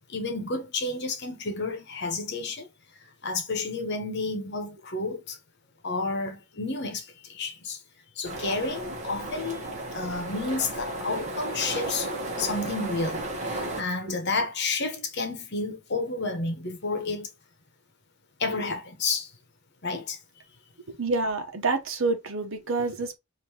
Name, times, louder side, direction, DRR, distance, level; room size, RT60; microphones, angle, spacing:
voice 1, 0.1-2.7 3.2-5.4 5.8-7.8 8.2-9.7 9.9-12.1 12.4-17.3 18.4-19.3 19.8-20.2, left 3 dB, 50° left, 1.1 m, -31 dB
sound 1, 8.2-13.8, right 1 dB, 35° right, 1.2 m, -34 dB
voice 2, 20.9-23.2, right 3 dB, 65° right, 1.0 m, -28 dB
5.2 x 2.8 x 2.9 m
head